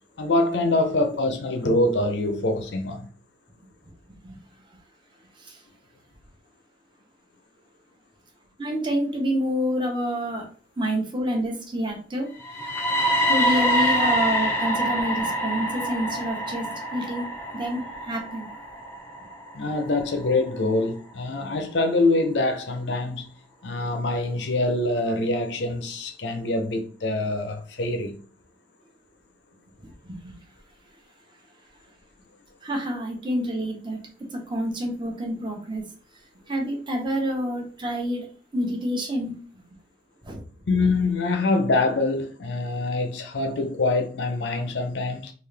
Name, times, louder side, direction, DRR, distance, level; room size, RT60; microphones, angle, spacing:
voice 1, 0.2-3.1 19.5-23.3 23.6-28.2 40.6-45.3, left 2 dB, 80° left, 0.6 m, -24 dB
voice 2, 8.6-10.5 10.8-12.3 13.3-18.5 29.8-30.3 32.6-34.0 34.3-35.8 36.5-38.3 38.5-39.3 40.2-40.4, equal, 25° right, 0.9 m, -28 dB
sound 1, 12.4-20.3, equal, 15° left, 0.6 m, -26 dB
3.9 x 2.5 x 3.2 m
head